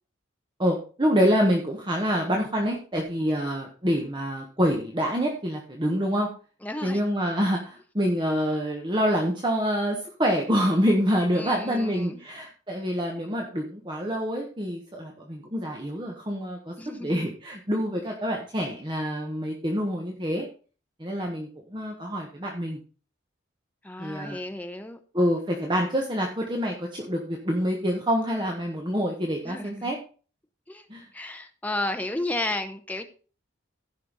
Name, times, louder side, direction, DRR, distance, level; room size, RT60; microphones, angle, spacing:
voice 1, 0.6-6.3 6.8-16.7 17.0-20.5 21.0-22.8 24.0-24.4 25.1-30.0 30.9-31.1, equal, 25° right, 0 dB, 1.4 m, -26 dB
voice 2, 6.6-7.0 11.3-12.2 16.8-17.3 23.8-25.0 29.4-29.9 30.7-30.9 31.1-33.0, left 1 dB, 10° left, 6 dB, 1.0 m, -33 dB
16.0 x 5.5 x 4.1 m, 0.37 s
head